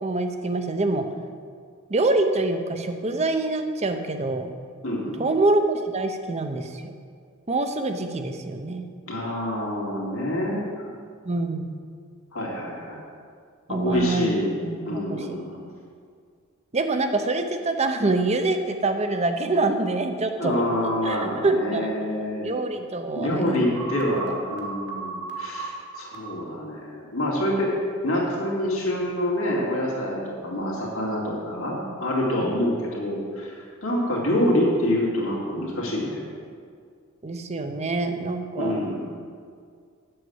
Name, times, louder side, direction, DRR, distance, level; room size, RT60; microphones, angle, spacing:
voice 1, 0.0-1.0 1.9-4.5 5.2-6.9 7.5-8.9 11.2-11.8 13.7-15.4 16.7-20.5 21.0-21.9 22.4-23.7 32.4-32.5 37.2-38.9, right 2 dB, 30° right, 7 dB, 0.7 m, -25 dB
voice 2, 4.8-5.2 9.1-10.9 12.3-13.0 13.7-14.5 14.9-15.7 20.4-22.5 23.2-27.7 28.0-36.3 38.6-39.1, left 1 dB, 75° left, -3 dB, 2.2 m, -26 dB
sound 1, 23.7-26.3, right 5 dB, 55° right, 1.6 m, -34 dB
7.7 x 6.7 x 7.9 m, 2.1 s
head